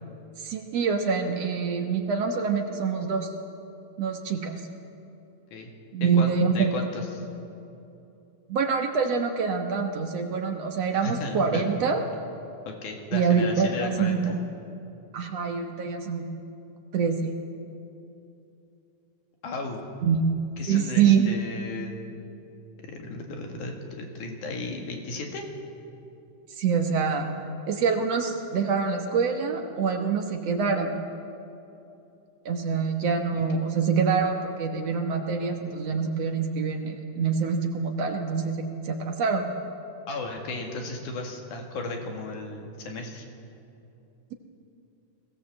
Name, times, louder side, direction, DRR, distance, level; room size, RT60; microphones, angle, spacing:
voice 1, 0.4-3.3 4.0-4.6 5.9-6.7 8.5-12.0 13.1-14.2 15.1-16.3 16.9-17.3 20.0-20.2 20.7-21.3 26.6-27.3 27.7-31.0 32.5-39.4, right 6 dB, 60° right, 4 dB, 2.1 m, -25 dB
voice 2, 6.1-7.3 11.0-11.7 12.7-14.4 19.4-19.8 20.6-22.0 22.8-25.5 40.1-43.3, left 2 dB, 75° left, 2 dB, 3.4 m, -35 dB
21.0 x 16.5 x 7.6 m, 2.8 s
omnidirectional pair, 3.6 m